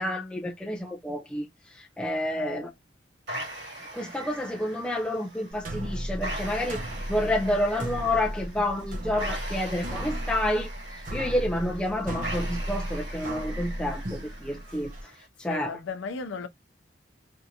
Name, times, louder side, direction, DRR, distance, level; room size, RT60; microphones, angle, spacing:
voice 1, 0.0-2.7 3.9-6.8 7.1-10.7 11.1-14.9 15.4-15.7, left 1 dB, 5° left, 0.4 m, -29 dB
voice 2, 2.3-2.7 15.5-16.5, left 4 dB, 80° left, 0.5 m, -36 dB
sound 1, 3.3-15.3, right 1 dB, 80° right, 2.8 m, -41 dB
sound 2, 5.5-15.0, right 1 dB, 45° right, 0.8 m, -35 dB
4.4 x 2.5 x 2.7 m
head